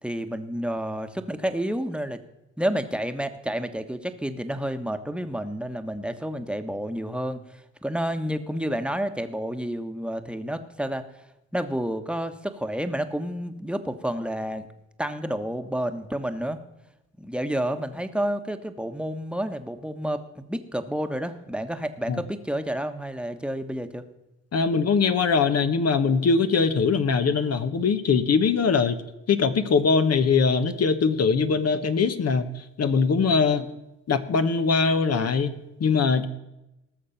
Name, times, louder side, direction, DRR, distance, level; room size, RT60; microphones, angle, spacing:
voice 1, 0.0-2.2 2.6-11.1 11.5-14.7 15.0-16.6 17.2-24.0 33.4-33.7, equal, 5° right, 8 dB, 1.3 m, -30 dB
voice 2, 24.5-29.0 29.3-33.6 34.1-36.3, left 5 dB, 50° left, 9 dB, 1.1 m, -22 dB
19.0 x 6.6 x 5.8 m, 0.93 s
hypercardioid pair, 55°, 32 cm